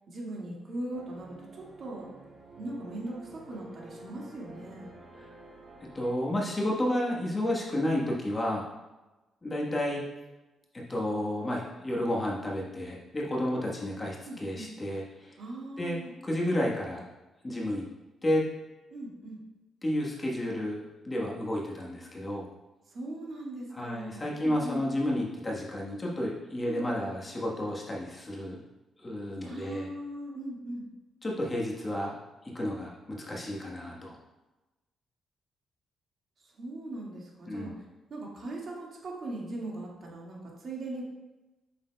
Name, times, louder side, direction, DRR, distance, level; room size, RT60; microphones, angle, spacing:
voice 1, 0.1-2.1 2.6-4.9 14.2-14.7 15.4-16.1 18.9-19.4 22.9-24.8 26.7-26.9 29.4-30.8 36.4-37.7 38.1-41.0, right 1 dB, 55° right, -3 dB, 1.9 m, -39 dB
sound 1, 0.9-6.2, right 2 dB, 40° right, 1.7 m, -50 dB
voice 2, 5.9-8.7 9.4-10.0 10.7-15.4 15.8-17.1 17.4-17.8 18.2-18.4 19.8-22.5 23.7-28.6 29.0-29.9 31.2-32.2 32.5-34.2 37.5-37.8, left 1 dB, 25° left, -3 dB, 1.2 m, -31 dB
7.8 x 6.4 x 2.2 m, 1.1 s
cardioid pair, 95°, 0 cm